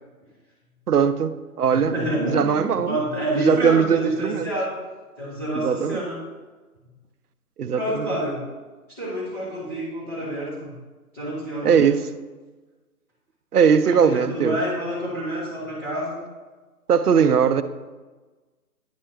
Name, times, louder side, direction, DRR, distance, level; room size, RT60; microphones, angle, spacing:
voice 1, 0.9-1.3 1.6-1.9 2.3-3.0 3.3-4.5 5.6-6.0 7.6-8.1 11.6-12.0 13.5-14.6 16.9-17.6, right 7 dB, 75° right, 12 dB, 0.6 m, -19 dB
voice 2, 1.7-4.7 5.2-6.2 7.7-8.4 8.9-10.7 11.1-12.0 13.8-16.2, right 1 dB, 10° left, -13 dB, 1.1 m, -28 dB
10.5 x 4.3 x 3.0 m, 1.3 s
figure-of-eight pair, 155°, 46 cm